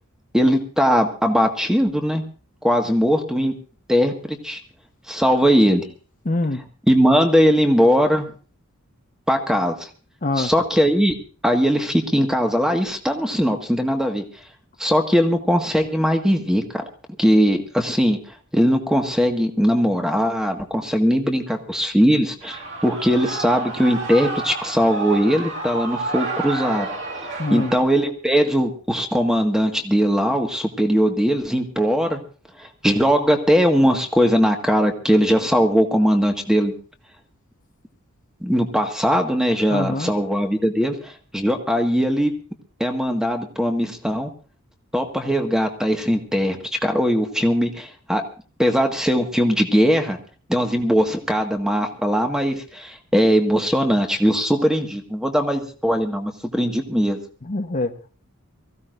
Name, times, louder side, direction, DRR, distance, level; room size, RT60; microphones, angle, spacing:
voice 1, 0.3-2.2 2.6-3.5 3.9-4.6 5.1-5.9 6.9-8.3 9.3-9.9 10.4-11.2 11.4-14.2 14.8-16.8 17.2-18.2 18.5-26.9 27.5-32.2 32.6-36.7 38.4-42.3 42.8-44.3 44.9-48.2 48.6-50.2 50.5-57.2, equal, 5° right, 4 dB, 1.7 m, -20 dB
voice 2, 6.2-6.6 10.2-10.5 27.4-27.7 39.7-40.1 57.4-57.9, left 2 dB, 40° left, 4 dB, 1.1 m, -24 dB
Shout / Cheering, 22.4-27.8, right 3 dB, 55° right, 2.2 m, -30 dB
23.5 x 15.5 x 2.6 m, 0.38 s
head